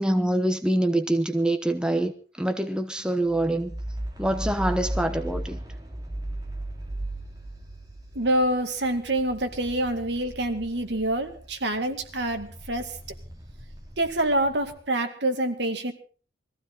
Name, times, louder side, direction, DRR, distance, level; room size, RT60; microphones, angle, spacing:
voice 1, 0.0-3.8 4.2-5.6, right 1 dB, 5° right, 0.9 m, -25 dB
sound 1, 3.3-11.5 11.9-14.5, right 1 dB, 20° right, 2.8 m, -36 dB
voice 2, 8.2-13.0 14.0-15.9, right 1 dB, 75° right, 2.2 m, -26 dB
21.5 x 15.0 x 4.0 m
head